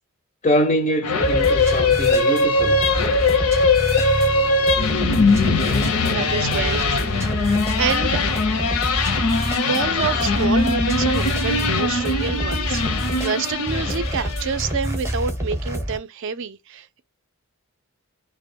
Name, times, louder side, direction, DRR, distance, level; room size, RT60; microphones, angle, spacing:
voice 1, 0.4-2.8, equal, 30° left, 0.4 m, -23 dB
sound 1, 1.0-14.6, left 3 dB, 85° left, 0.6 m, -21 dB
sound 2, 1.2-16.0, equal, 10° right, 0.6 m, -28 dB
voice 2, 6.1-7.2 7.8-8.2 9.6-17.0, right 6 dB, 55° right, 0.4 m, -27 dB
2.1 x 2.0 x 3.5 m
head